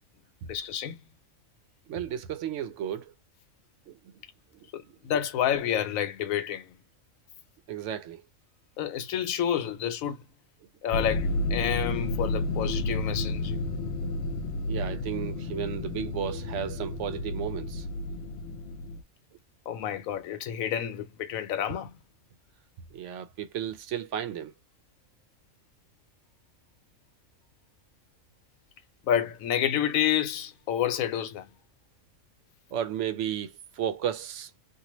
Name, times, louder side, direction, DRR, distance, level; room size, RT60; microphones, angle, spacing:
voice 1, 0.5-1.0 4.7-6.7 8.8-10.2 10.8-13.6 19.7-21.9 29.0-31.5, left 10 dB, 90° left, 1.0 m, -29 dB
voice 2, 1.9-3.1 3.9-4.1 4.6-4.7 7.7-8.3 14.7-17.9 22.9-24.5 32.7-34.5, right 9 dB, 70° right, 0.9 m, -34 dB
sound 1, 10.9-19.0, left 2 dB, 65° left, 0.8 m, -31 dB
2.7 x 2.4 x 2.9 m
omnidirectional pair, 1.4 m